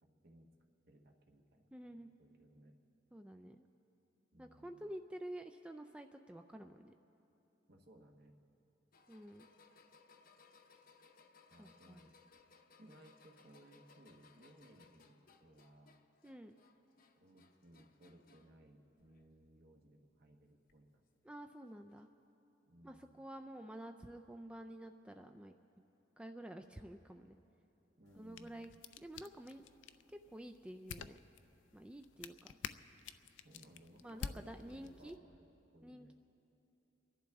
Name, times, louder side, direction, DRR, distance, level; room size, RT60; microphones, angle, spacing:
voice 1, 0.0-0.5 0.9-2.7 4.3-4.9 7.7-8.4 11.5-12.1 12.8-15.9 17.2-21.0 22.7-23.2 28.0-28.6 33.4-35.5 35.7-36.1, right 1 dB, 60° right, 3 dB, 1.2 m, -62 dB
voice 2, 1.7-2.1 3.1-3.6 4.4-6.9 9.1-9.4 11.6-12.0 16.2-16.5 21.2-22.1 22.8-25.6 26.2-27.4 28.2-28.7 29.0-29.6 30.1-31.2 31.7-32.6 34.0-35.2 35.8-36.1, right 1 dB, 5° right, 6 dB, 0.3 m, -50 dB
sound 1, 8.9-18.6 19.0-19.6 20.7-20.8 21.9-22.0, left 4 dB, 50° left, 0.7 m, -66 dB
sound 2, 28.1-35.2, left 7 dB, 75° left, 0.4 m, -51 dB
29.5 x 11.5 x 3.5 m, 2.9 s
head